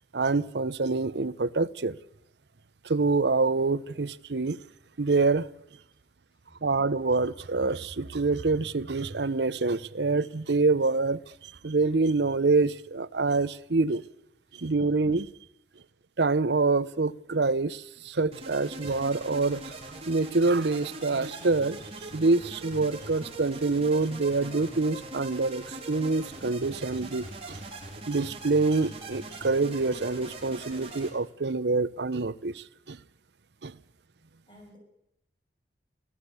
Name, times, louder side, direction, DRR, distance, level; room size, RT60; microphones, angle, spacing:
voice 1, 0.1-2.0 2.8-4.6 5.0-5.5 6.6-11.2 11.6-14.0 14.5-15.3 16.2-19.7 20.1-27.6 28.1-33.0 33.6-33.7, right 3 dB, 75° right, 0.8 m, -26 dB
voice 2, 6.3-6.6 14.5-14.7 34.5-34.8, equal, 30° left, 7.6 m, -56 dB
sound 1, 18.3-31.1, right 2 dB, 35° right, 4.1 m, -41 dB
26.0 x 15.5 x 8.3 m
head